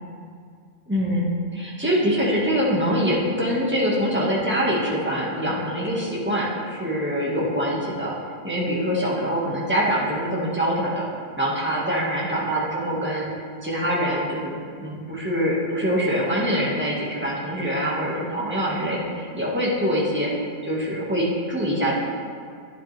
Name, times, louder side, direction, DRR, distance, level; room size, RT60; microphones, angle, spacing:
voice 1, 0.9-8.1 8.4-11.1 11.4-20.3 20.6-22.0, equal, 10° right, -5 dB, 1.7 m, -24 dB
11.5 x 9.1 x 3.4 m, 2.1 s
omnidirectional pair, 1.2 m